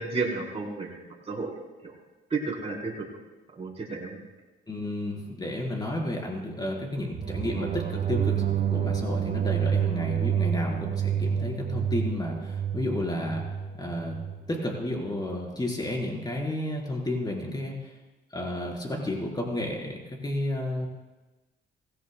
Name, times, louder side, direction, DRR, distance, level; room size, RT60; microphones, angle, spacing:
voice 1, 0.0-1.5 1.8-1.9 2.3-3.1 3.6-4.2, right 3 dB, 30° right, -2 dB, 4.0 m, -32 dB
voice 2, 4.7-13.4 13.8-14.2 14.5-18.0 18.3-20.9, left 1 dB, 20° left, -1 dB, 4.0 m, -32 dB
sound 1, 7.1-14.4, right 8 dB, 45° right, 1.0 m, -28 dB
19.5 x 16.5 x 2.2 m, 1.1 s
cardioid pair, 90°, 20 cm